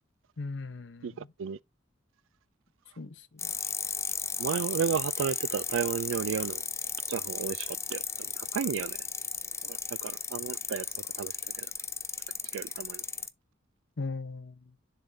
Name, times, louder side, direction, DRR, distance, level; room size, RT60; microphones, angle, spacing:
voice 1, 0.4-1.3 3.0-3.5 14.0-14.7, left 3 dB, 65° left, 0.8 m, -39 dB
sound 1, 3.4-13.3, left 6 dB, 15° left, 0.4 m, -35 dB
voice 2, 4.4-6.6 7.1-9.0 9.6-10.9 11.1-11.7 12.5-13.0, right 7 dB, 80° right, 0.4 m, -33 dB
6.9 x 3.6 x 3.9 m
head